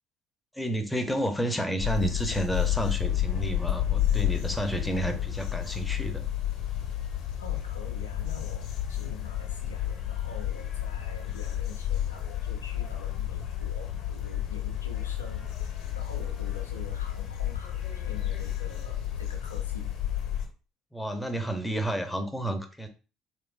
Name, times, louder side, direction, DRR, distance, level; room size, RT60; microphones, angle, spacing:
voice 1, 0.5-6.3 20.9-22.9, right 1 dB, 5° left, 7 dB, 0.7 m, -31 dB
sound 1, 1.8-20.5, left 11 dB, 55° left, 0.8 m, -31 dB
voice 2, 7.4-19.9, left 4 dB, 85° left, 3 dB, 0.4 m, -46 dB
3.3 x 3.0 x 2.5 m, 0.34 s
figure-of-eight pair, 60°, 0 cm